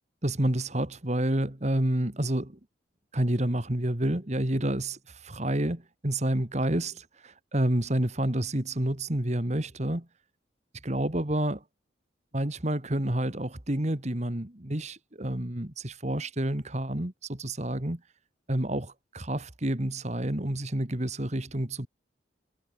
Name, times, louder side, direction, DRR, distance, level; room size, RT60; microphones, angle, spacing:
voice 1, 0.2-2.6 3.1-10.1 10.8-11.6 12.3-18.0 18.5-21.9, right 1 dB, 35° right, 2.0 m, -29 dB
head